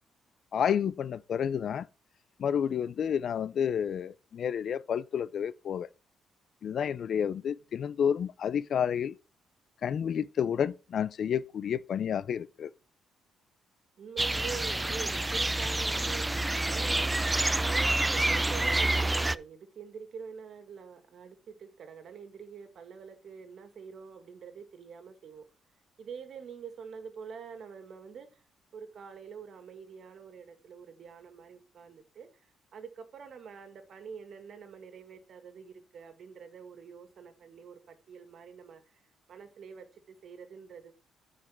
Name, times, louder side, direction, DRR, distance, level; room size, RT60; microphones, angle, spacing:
voice 1, 0.5-1.9 2.4-5.9 6.6-9.1 9.8-12.7, left 8 dB, 60° left, 0.5 m, -30 dB
voice 2, 14.0-16.3 16.7-17.2 17.6-25.4 26.0-28.4 28.7-38.9 39.3-40.9, right 6 dB, 60° right, 1.9 m, -45 dB
sound 1, 14.2-19.4, right 2 dB, 15° right, 0.3 m, -28 dB
9.8 x 4.9 x 4.5 m
cardioid pair, 90°, 0 cm